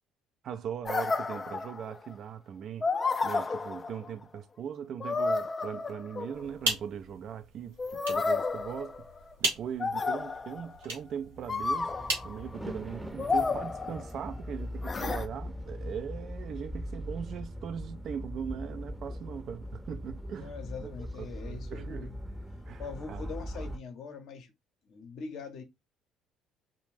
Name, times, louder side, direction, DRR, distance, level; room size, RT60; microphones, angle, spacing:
voice 1, 0.4-2.9 3.2-9.0 9.4-11.9 12.2-20.9 21.2-22.1 22.7-22.8 23.1-23.3 23.6-23.7, right 8 dB, 55° right, 0.3 m, -40 dB
sound 1, 0.8-2.1 2.8-4.2 5.0-6.5 7.8-9.3 9.8-10.7 11.5-12.4 13.2-14.3 14.8-15.3, left 4 dB, 30° left, 0.3 m, -31 dB
sound 2, 6.3-13.2, right 3 dB, 85° right, 0.8 m, -38 dB
sound 3, 11.4-23.8, equal, 5° right, 0.7 m, -40 dB
voice 2, 20.4-22.2 22.8-24.5 24.9-25.6, left 5 dB, 60° left, 0.7 m, -42 dB
2.4 x 2.0 x 3.1 m
hypercardioid pair, 55°, 0 cm